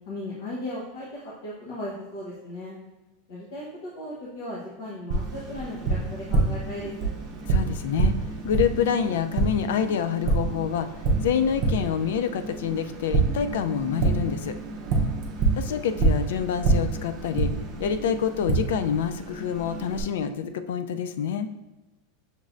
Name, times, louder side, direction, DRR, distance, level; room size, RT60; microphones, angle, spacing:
voice 1, 0.1-2.8 3.3-7.1 15.3-15.7, left 1 dB, 55° left, -5 dB, 0.9 m, -37 dB
Tap, 5.1-20.0, right 3 dB, 35° right, 0.6 m, -27 dB
voice 2, 7.5-10.9 11.2-14.5 15.6-17.5 17.8-21.5, left 8 dB, 80° left, 10 dB, 0.3 m, -27 dB
6.5 x 3.1 x 2.5 m, 1.1 s
supercardioid pair, 175°, 0 cm